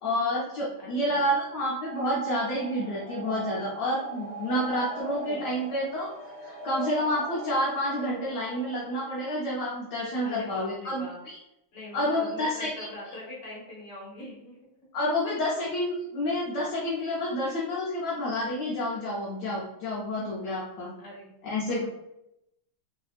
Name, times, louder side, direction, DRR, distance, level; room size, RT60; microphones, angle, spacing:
voice 1, 0.0-6.1 6.4-11.4 11.9-12.9 14.9-20.9 21.4-21.8, left 1 dB, 65° left, -5 dB, 1.1 m, -29 dB
voice 2, 0.8-1.3 5.3-5.5 10.2-11.2 11.7-14.6 20.4-20.6 21.0-21.8, left 1 dB, 45° left, -4 dB, 1.3 m, -42 dB
sound 1, 1.7-9.4, right 3 dB, 25° left, 1.0 m, -40 dB
3.4 x 2.7 x 2.4 m, 0.85 s
omnidirectional pair, 2.3 m